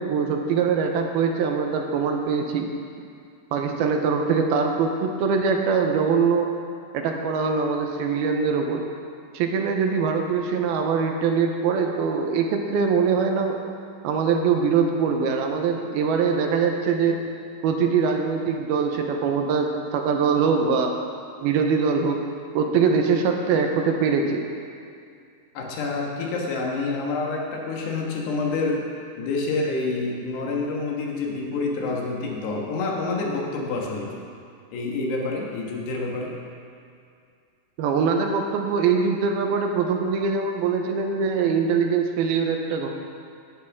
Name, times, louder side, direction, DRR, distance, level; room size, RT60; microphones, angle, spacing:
voice 1, 0.0-2.7 3.5-6.5 6.9-8.8 9.3-13.6 14.0-17.2 17.6-20.9 21.4-22.2 22.5-24.4 37.8-42.9, right 5 dB, 80° right, 3 dB, 2.7 m, -23 dB
voice 2, 25.6-28.9 29.2-34.2 34.7-36.3, left 3 dB, 85° left, -1 dB, 3.7 m, -27 dB
17.5 x 11.0 x 3.6 m, 2.3 s
omnidirectional pair, 4.6 m